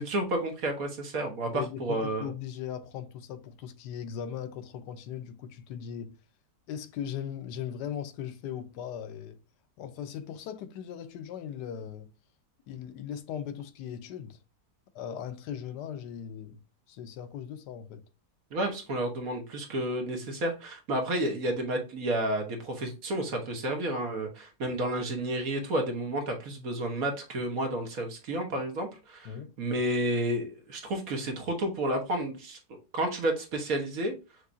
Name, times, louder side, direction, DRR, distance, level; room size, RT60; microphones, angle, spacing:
voice 1, 0.0-2.3 18.5-29.3 29.6-34.1, right 1 dB, 60° right, 1.5 m, -31 dB
voice 2, 1.5-6.2 6.7-9.4 9.8-12.1 12.7-14.4 14.9-16.6 16.9-18.0 29.2-29.6, left 9 dB, 85° left, 1.2 m, -38 dB
6.1 x 2.8 x 2.6 m
omnidirectional pair, 1.8 m